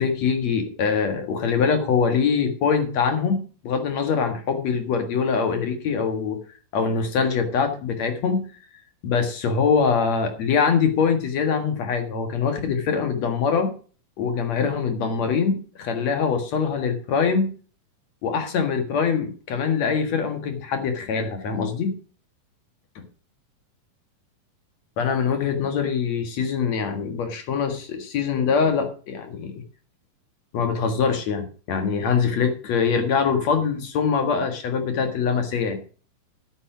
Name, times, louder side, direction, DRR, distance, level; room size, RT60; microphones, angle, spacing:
voice 1, 0.0-6.4 6.7-8.4 9.0-13.7 14.2-17.5 18.2-21.9 23.0-23.1 25.0-29.6 30.5-35.8, left 6 dB, 55° left, 6 dB, 2.7 m, -23 dB
9.7 x 8.5 x 5.7 m, 0.39 s
omnidirectional pair, 4.1 m